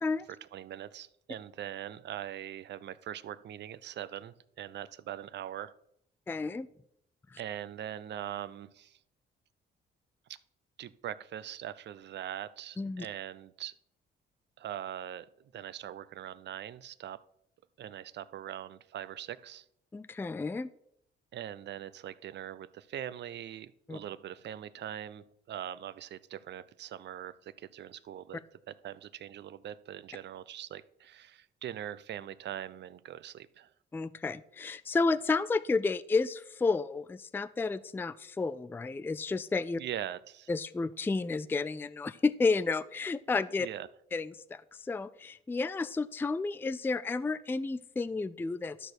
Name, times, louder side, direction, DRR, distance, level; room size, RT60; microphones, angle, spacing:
voice 1, 0.4-5.7 7.4-9.0 10.3-10.4 10.8-13.7 14.6-17.2 17.8-19.7 21.3-28.4 28.7-33.7 39.8-40.5 43.6-43.9, right 11 dB, 60° right, 16 dB, 0.6 m, -42 dB
voice 2, 6.3-6.7 7.3-7.4 12.8-13.1 19.9-20.7 23.9-24.0 33.9-39.8 40.5-43.7 44.1-48.9, left 3 dB, 10° left, 14 dB, 0.3 m, -31 dB
12.0 x 4.4 x 6.6 m, 0.75 s
cardioid pair, 90°, 20 cm